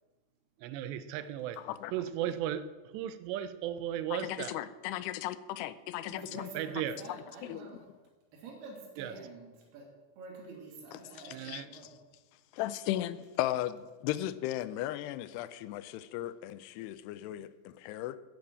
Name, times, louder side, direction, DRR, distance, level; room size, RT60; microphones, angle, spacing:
voice 1, 0.6-1.6 1.9-2.7 2.9-4.6 6.5-7.0 9.0-9.1 11.3-11.7, right 11 dB, 85° right, 13 dB, 2.9 m, -35 dB
voice 2, 1.6-1.9 4.1-6.5 7.4-7.7 10.9-11.8 12.5-18.2, left 13 dB, 80° left, 14 dB, 2.6 m, -36 dB
voice 3, 6.1-7.8 8.3-9.9 10.2-11.9, right 3 dB, 70° right, -2 dB, 4.7 m, -47 dB
9.7 x 9.5 x 8.5 m, 1.3 s
omnidirectional pair, 4.9 m